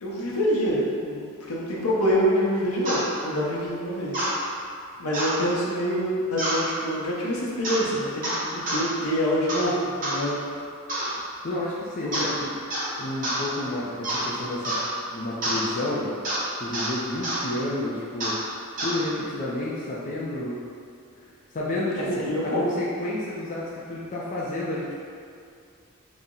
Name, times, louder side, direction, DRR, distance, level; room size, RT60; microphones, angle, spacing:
voice 1, 0.0-4.2 5.0-10.4 12.0-12.3 22.0-22.6, equal, 70° left, -5 dB, 0.7 m, -26 dB
sound 1, 2.8-3.0 4.1-4.3 5.1-5.4 6.4-6.6 7.6-7.9 8.2-8.8 9.5-9.7 10.0-10.2 10.9-11.1 12.1-12.4 12.7-12.9 13.2-13.4 14.0-14.3 14.6-14.9 15.4-15.6 16.2-16.4 16.7-16.9 17.2-17.4 18.2-18.4 18.8-19.0, right 1 dB, 40° right, 0.8 m, -27 dB
voice 2, 11.4-12.5 13.0-14.7 15.1-16.1 16.6-18.4 18.8-20.6 21.5-25.0, left 1 dB, 35° left, -6 dB, 0.4 m, -30 dB
4.1 x 2.0 x 3.7 m, 2.3 s
head